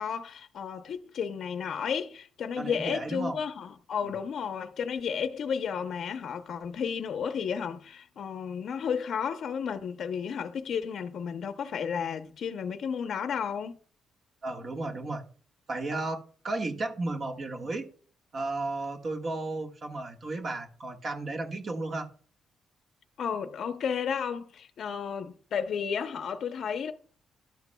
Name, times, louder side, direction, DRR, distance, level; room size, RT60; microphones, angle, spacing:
voice 1, 0.0-13.8 23.2-26.9, left 7 dB, 65° left, 0.6 m, -32 dB
voice 2, 2.6-3.4 4.0-4.1 14.4-15.2 15.7-17.9 18.3-22.1, right 2 dB, 45° right, 1.5 m, -34 dB
12.0 x 8.1 x 2.2 m
cardioid pair, 105°, 0 cm